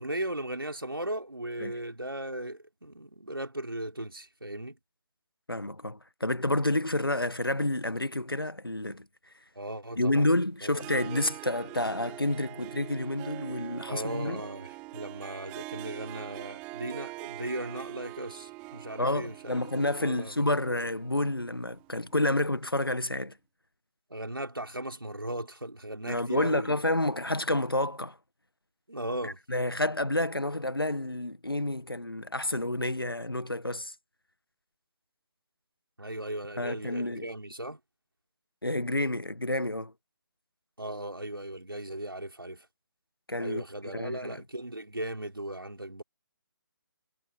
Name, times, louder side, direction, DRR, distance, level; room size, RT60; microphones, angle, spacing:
voice 1, 0.0-4.8 9.5-10.3 10.6-10.8 13.9-19.6 20.0-20.5 24.1-26.8 28.9-29.4 36.0-37.8 40.8-42.7 43.4-46.0, right 1 dB, 80° right, 4.8 m, -37 dB
voice 2, 5.5-9.0 10.0-14.4 19.0-23.3 26.0-28.2 29.2-33.9 36.6-37.3 38.6-39.9 43.3-44.4, left 1 dB, 85° left, 1.5 m, -29 dB
Harp, 10.7-22.6, right 24 dB, 10° right, 0.5 m, -43 dB
figure-of-eight pair, 145°, 12 cm